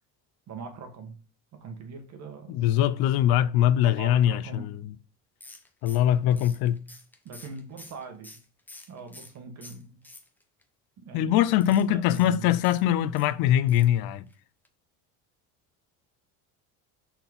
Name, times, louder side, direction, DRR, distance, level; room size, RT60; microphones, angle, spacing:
voice 1, 0.5-1.2 1.6-2.6 3.8-4.7 7.2-8.4 8.9-10.0 11.0-11.4 11.7-12.7, right 4 dB, 45° right, 1.8 m, -41 dB
voice 2, 2.5-4.9 5.8-6.8 11.1-14.3, left 11 dB, 70° left, 0.6 m, -22 dB
sound 1, 5.4-9.4 9.6-10.6 11.5-13.3 13.7-14.0 14.3-14.4 14.6-14.7, left 2 dB, 5° left, 0.8 m, -49 dB
5.9 x 4.4 x 5.3 m
cardioid pair, 145°, 38 cm